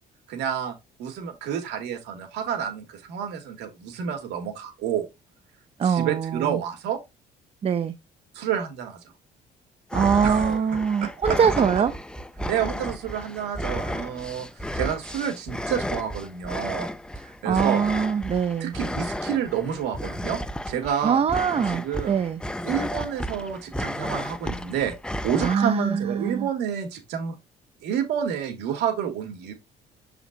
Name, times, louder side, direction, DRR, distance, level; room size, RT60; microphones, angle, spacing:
voice 1, 0.3-5.1 5.8-7.0 8.3-9.0 10.2-10.6 11.0-11.1 11.8-11.9 12.5-14.5 14.7-16.9 17.2-17.8 18.6-20.4 20.7-21.2 21.7-22.2 22.6-25.0 25.2-27.4 27.8-29.5, right 8 dB, 85° right, 2.5 m, -29 dB
voice 2, 5.8-6.6 7.6-8.0 9.9-11.9 17.4-18.7 21.0-22.4 25.4-26.5, right 7 dB, 35° right, 0.6 m, -23 dB
sound 1, 9.9-25.6, equal, 5° left, 0.6 m, -32 dB
7.8 x 5.0 x 2.8 m
cardioid pair, 110°, 17 cm